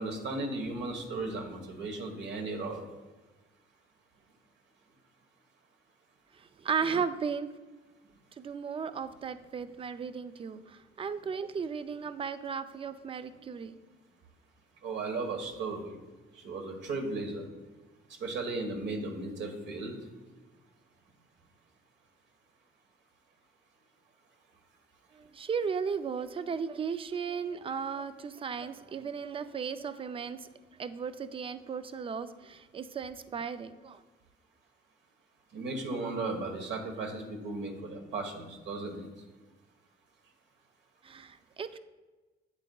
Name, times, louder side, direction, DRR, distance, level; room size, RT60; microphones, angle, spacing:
voice 1, 0.0-2.8 14.8-16.0 16.4-17.4 18.2-19.9 35.5-39.1, right 3 dB, 70° right, 3 dB, 1.3 m, -35 dB
voice 2, 6.6-7.5 8.4-13.7 25.2-30.5 30.8-34.0 41.0-41.8, right 6 dB, 30° right, 12 dB, 0.4 m, -35 dB
8.6 x 7.2 x 2.3 m, 1.2 s
cardioid pair, 105°, 19 cm